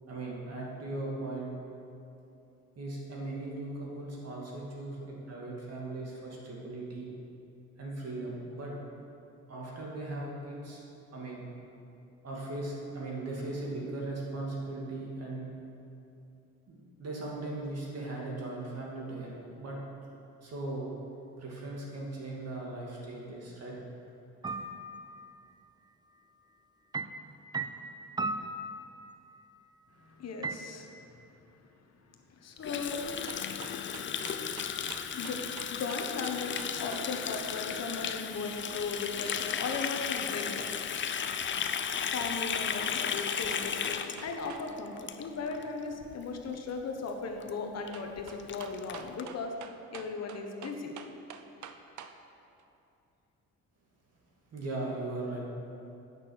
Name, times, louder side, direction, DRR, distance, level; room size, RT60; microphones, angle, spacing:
voice 1, 0.1-1.5 2.8-7.1 7.8-8.7 9.5-10.8 11.1-11.5 12.2-15.5 16.7-19.8 20.4-20.9 21.4-23.8 54.5-55.4, right 2 dB, 55° right, -3 dB, 2.4 m, -38 dB
sound 1, 24.4-25.2 26.9-29.3 30.4-30.6, right 3 dB, 15° right, 0.4 m, -36 dB
voice 2, 30.0-31.5 32.3-33.0 35.2-40.7 42.1-49.5 49.9-50.9, left 4 dB, 60° left, 3 dB, 1.1 m, -37 dB
Water tap faucet, 32.6-45.6 45.9-46.2 46.5-46.8 47.1-47.2 47.4-47.5 47.9-48.0 48.2-49.2, left 7 dB, 40° left, 0.5 m, -35 dB
sound 2, 33.0-37.1 42.2-44.7 44.9-45.0 47.9-52.2 52.6-52.7, right 8 dB, 75° right, 0.6 m, -48 dB
8.7 x 6.1 x 6.3 m, 2.7 s
cardioid pair, 90°, 30 cm